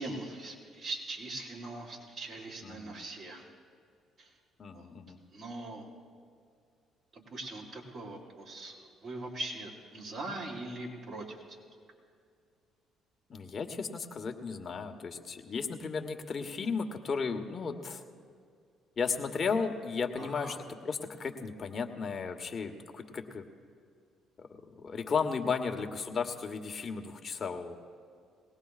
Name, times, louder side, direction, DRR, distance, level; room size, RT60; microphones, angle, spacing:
voice 1, 0.0-3.5 4.2-4.3 4.7-4.9 5.3-5.9 7.1-11.4 20.2-20.6, right 2 dB, 60° right, -3 dB, 4.0 m, -41 dB
voice 2, 2.6-3.0 4.6-5.2 13.3-18.0 19.0-20.6 20.8-23.5 24.4-27.8, left 5 dB, 45° left, 5 dB, 1.2 m, -34 dB
20.5 x 18.0 x 2.4 m, 2.3 s
supercardioid pair, 60°, 0 cm